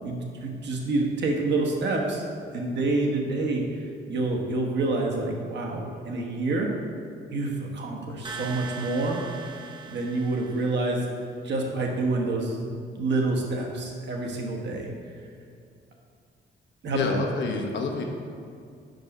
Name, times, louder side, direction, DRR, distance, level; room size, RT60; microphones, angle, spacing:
voice 1, 0.0-2.3 2.5-6.7 7.3-9.5 9.9-11.1 11.4-14.9 16.8-17.2, right 2 dB, 60° right, 0 dB, 1.2 m, -28 dB
sound 1, 8.2-11.2, right 5 dB, 25° right, 0.7 m, -40 dB
voice 2, 16.9-18.0, left 4 dB, 65° left, 2 dB, 1.0 m, -28 dB
5.3 x 4.8 x 5.3 m, 2.3 s
cardioid pair, 90°, 20 cm